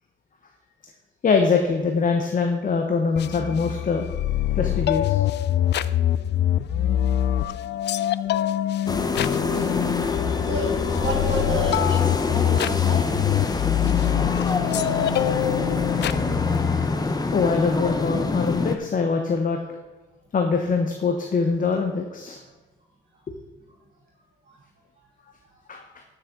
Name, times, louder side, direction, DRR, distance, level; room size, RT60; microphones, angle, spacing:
voice 1, 1.2-4.1 4.6-5.2 17.3-19.6 20.3-22.4 23.3-23.4 25.7-25.8, left 5 dB, 45° left, 3 dB, 1.1 m, -23 dB
sound 1, 3.2-16.9, left 11 dB, 60° left, 0.4 m, -24 dB
sound 2, 8.9-18.8, left 3 dB, 20° left, 0.8 m, -26 dB
voice 2, 10.4-13.0 24.5-24.6, right 2 dB, 60° right, -4 dB, 2.8 m, -32 dB
12.0 x 6.5 x 3.8 m, 1.2 s
cardioid pair, 90°, 20 cm